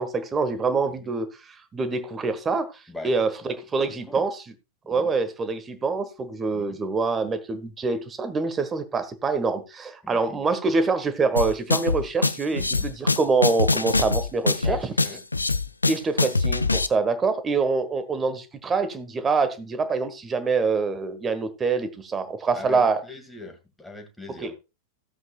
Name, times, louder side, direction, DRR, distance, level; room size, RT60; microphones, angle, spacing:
voice 1, 0.0-4.4 4.9-14.8 15.9-23.0 24.4-24.5, right 4 dB, 20° right, 1.4 m, -25 dB
voice 2, 3.9-4.3 4.9-5.1 6.5-6.8 10.0-10.4 12.5-12.9 14.6-15.2 22.5-24.6, left 2 dB, 5° left, 2.0 m, -41 dB
sound 1, 11.4-16.9, left 3 dB, 80° left, 0.5 m, -23 dB
15.0 x 7.9 x 2.4 m
figure-of-eight pair, 90°, 0 cm